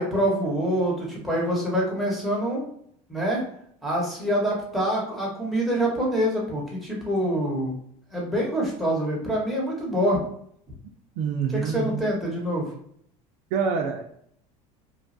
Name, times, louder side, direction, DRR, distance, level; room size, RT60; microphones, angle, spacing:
voice 1, 0.0-2.6 3.1-3.4 3.8-7.7 8.1-10.2 11.5-12.7, equal, ahead, -5 dB, 1.1 m, -25 dB
voice 2, 11.2-12.0 13.5-14.0, right 6 dB, 65° right, 3 dB, 0.5 m, -26 dB
3.1 x 2.2 x 2.6 m, 0.67 s
supercardioid pair, 125°, 18 cm